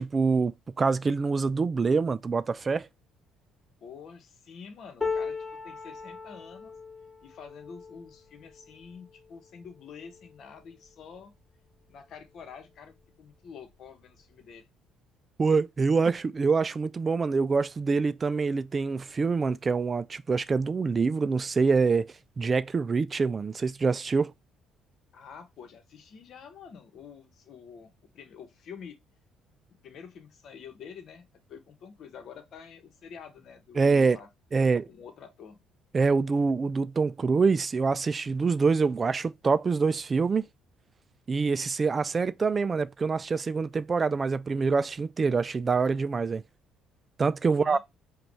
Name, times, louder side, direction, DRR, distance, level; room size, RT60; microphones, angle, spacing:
voice 1, 0.0-2.9 15.4-24.3 33.8-34.2 34.5-34.8 35.9-40.5 41.3-46.4 47.2-47.8, right 4 dB, 35° right, 0.3 m, -25 dB
voice 2, 3.8-5.4 5.6-6.7 7.2-11.3 11.9-14.7 25.1-29.0 29.8-34.3 34.6-35.6 47.5-47.8, left 6 dB, 60° left, 1.1 m, -47 dB
sound 1, 5.0-11.2 11.7-11.9 12.2-13.0 14.0-14.1, left 4 dB, 15° left, 2.2 m, -39 dB
4.9 x 2.4 x 3.3 m
hypercardioid pair, 55°, 0 cm